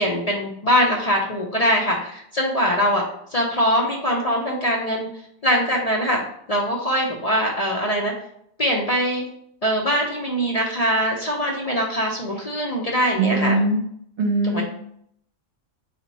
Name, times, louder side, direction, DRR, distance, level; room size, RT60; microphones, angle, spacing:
voice 1, 0.0-3.0 3.3-5.1 5.4-6.2 6.5-8.1 8.6-9.3 9.6-13.6 14.5-14.6, equal, 40° left, -2 dB, 0.6 m, -22 dB
voice 2, 13.2-13.8 14.2-14.6, right 2 dB, 55° right, 1 dB, 0.9 m, -21 dB
4.2 x 2.9 x 4.0 m, 0.68 s
omnidirectional pair, 1.3 m